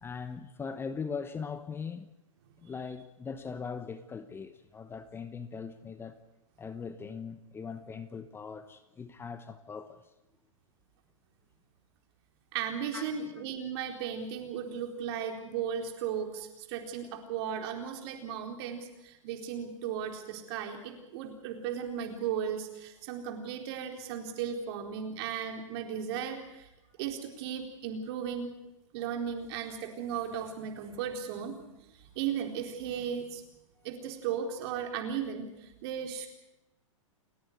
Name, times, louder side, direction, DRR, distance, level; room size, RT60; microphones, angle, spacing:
voice 1, 0.0-2.1 2.6-6.2 6.6-10.0 12.9-13.2, left 5 dB, 15° left, 1.0 m, -40 dB
voice 2, 12.5-26.7 27.0-28.5 28.9-31.6 32.1-33.4 33.8-36.3, right 8 dB, 50° right, 4.2 m, -36 dB
29.0 x 10.0 x 9.4 m
hypercardioid pair, 125°, 17 cm